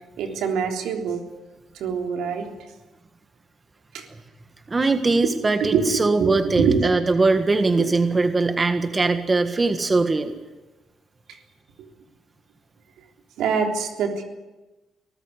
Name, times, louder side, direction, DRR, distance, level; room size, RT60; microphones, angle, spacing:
voice 1, 0.2-1.2 1.8-2.5 3.9-4.1 5.7-6.8 11.8-11.9 13.4-14.2, right 6 dB, 85° right, 3 dB, 3.5 m, -24 dB
voice 2, 4.7-10.3, right 3 dB, 25° right, 8 dB, 1.6 m, -21 dB
23.0 x 14.5 x 9.9 m, 1.1 s
cardioid pair, 90°, 0 cm